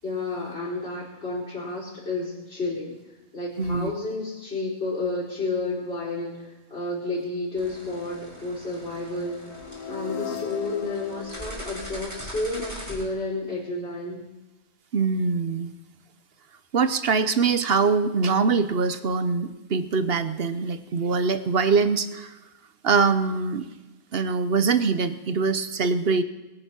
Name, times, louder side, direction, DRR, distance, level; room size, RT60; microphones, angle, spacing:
voice 1, 0.0-3.0 3.3-9.5 9.9-14.2, left 2 dB, 40° left, -10 dB, 5.3 m, -31 dB
voice 2, 3.6-3.9 14.9-15.7 16.7-22.4 22.8-23.7 24.1-26.2, right 5 dB, 45° right, 12 dB, 0.9 m, -23 dB
sound 1, 7.6-13.0, equal, 10° right, 3.9 m, -41 dB
sound 2, 9.2-13.2, left 6 dB, 85° left, 1.4 m, -38 dB
22.0 x 10.0 x 5.9 m, 1.1 s
omnidirectional pair, 1.6 m